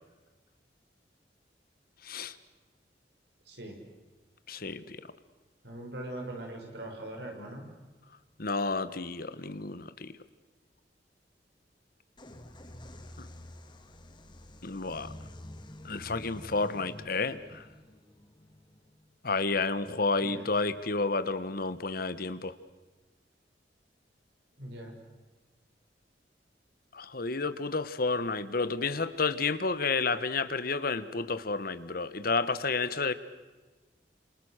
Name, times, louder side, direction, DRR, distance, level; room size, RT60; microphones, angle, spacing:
voice 1, 2.0-2.3 4.5-5.0 8.4-10.1 13.2-13.3 14.6-15.1 15.8-17.6 19.2-22.5 26.9-33.1, left 3 dB, 55° left, 13 dB, 1.4 m, -31 dB
voice 2, 3.5-3.8 5.6-7.7 20.2-20.5 24.6-25.0, right 1 dB, 70° right, 1 dB, 6.5 m, -41 dB
sound 1, 12.2-19.7, left 1 dB, 25° left, 2.3 m, -48 dB
30.0 x 27.5 x 6.6 m, 1.3 s
head